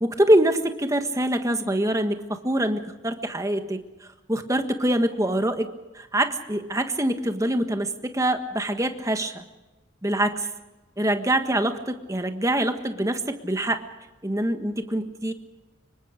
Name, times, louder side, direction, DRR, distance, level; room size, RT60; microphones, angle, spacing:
voice 1, 0.0-3.8 4.3-5.7 5.9-9.4 10.0-10.5 11.0-13.8 14.2-15.3, right 1 dB, 15° right, 7 dB, 1.5 m, -24 dB
25.5 x 23.0 x 5.1 m, 1.1 s
head